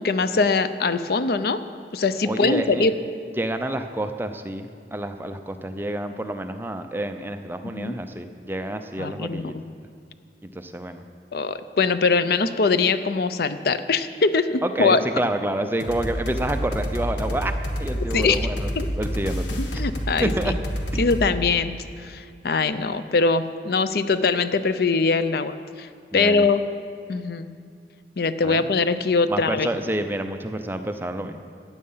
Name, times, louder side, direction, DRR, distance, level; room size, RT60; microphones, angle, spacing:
voice 1, 0.0-1.6 1.9-2.9 7.6-7.9 9.0-9.6 11.3-15.0 18.1-18.4 18.8-18.9 19.6-20.5 21.0-21.7 22.0-25.9 26.1-26.6 27.1-27.5 28.2-29.7, left 4 dB, 55° left, 12 dB, 0.5 m, -22 dB
voice 2, 2.3-2.9 3.4-9.5 10.4-11.0 14.8-18.7 19.0-19.8 20.2-20.5 20.9-21.0 26.1-26.5 28.4-28.6 29.3-31.4, right 1 dB, 10° right, 7 dB, 0.5 m, -28 dB
sound 1, 15.8-21.3, equal, 80° left, 1.6 m, -28 dB
15.0 x 9.6 x 5.6 m, 2.3 s
head